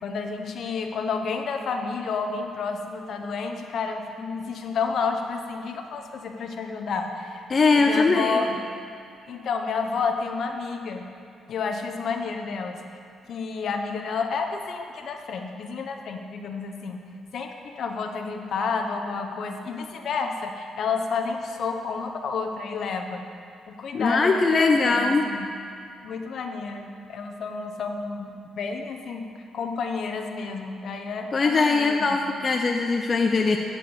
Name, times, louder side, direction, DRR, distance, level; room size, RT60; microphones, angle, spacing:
voice 1, 0.0-7.5 7.7-8.6 9.3-11.0 11.5-12.8 13.3-17.0 17.3-23.2 23.7-25.5 26.0-32.2, left 5 dB, 65° left, 4 dB, 1.1 m, -30 dB
voice 2, 7.5-8.4 23.9-25.2 31.3-33.6, left 3 dB, 40° left, 2 dB, 0.7 m, -21 dB
14.0 x 4.8 x 7.2 m, 2.5 s
cardioid pair, 90°, 0 cm